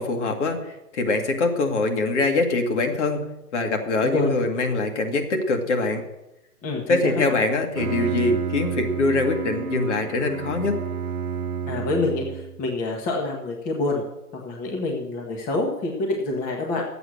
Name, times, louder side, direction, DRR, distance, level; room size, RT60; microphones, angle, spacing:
voice 1, 0.0-3.3 3.5-6.0 6.9-10.8, left 3 dB, 50° left, 3 dB, 2.2 m, -23 dB
voice 2, 4.0-4.3 6.6-7.3 11.7-14.0 14.3-16.8, left 2 dB, 15° left, 0 dB, 1.5 m, -27 dB
Bowed string instrument, 7.5-12.6, right 7 dB, 65° right, 1.0 m, -30 dB
13.0 x 8.2 x 6.5 m, 0.94 s
figure-of-eight pair, 125°, 45 cm